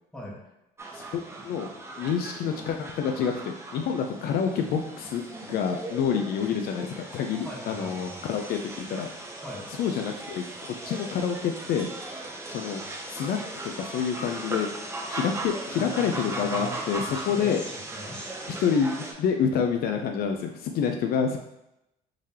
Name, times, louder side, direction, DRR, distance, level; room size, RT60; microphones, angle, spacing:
sound 1, 0.8-19.1, right 2 dB, 15° right, 0.6 m, -38 dB
voice 1, 0.9-1.7 2.0-9.1 9.8-11.9 12.5-12.8 13.1-13.4 13.6-14.7 15.1-17.6 18.6-21.4, left 7 dB, 65° left, 4 dB, 0.4 m, -28 dB
voice 2, 7.4-8.3 9.4-9.7 15.7-18.4, left 1 dB, 5° left, -3 dB, 1.0 m, -41 dB
3.7 x 3.2 x 2.8 m, 0.87 s
cardioid pair, 110°, 17 cm